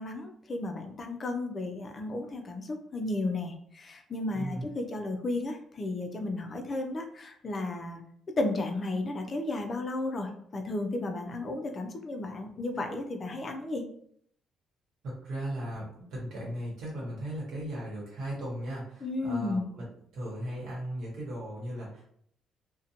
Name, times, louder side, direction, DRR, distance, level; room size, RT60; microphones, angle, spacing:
voice 1, 0.0-8.0 8.4-13.8 19.0-19.7, left 2 dB, 30° left, 4 dB, 0.4 m, -33 dB
voice 2, 15.0-22.0, right 1 dB, 65° right, -4 dB, 1.1 m, -37 dB
2.6 x 2.1 x 2.7 m, 0.66 s
cardioid pair, 155°, 0 cm